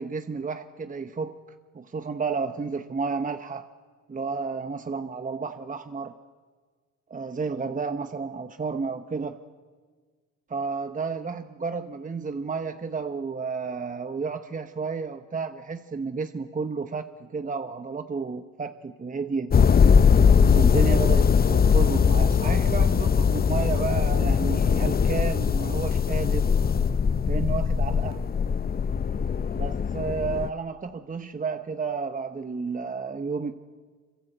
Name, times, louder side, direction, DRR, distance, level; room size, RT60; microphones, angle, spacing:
voice 1, 0.0-1.4 1.7-3.7 4.1-6.1 7.1-9.4 10.5-19.5 20.5-26.5 27.2-28.2 29.5-33.5, right 5 dB, 25° right, 9 dB, 1.0 m, -31 dB
sound 1, 19.5-30.5, left 6 dB, 30° left, 0.7 m, -21 dB
26.0 x 25.5 x 8.1 m, 1.5 s
cardioid pair, 90°, 30 cm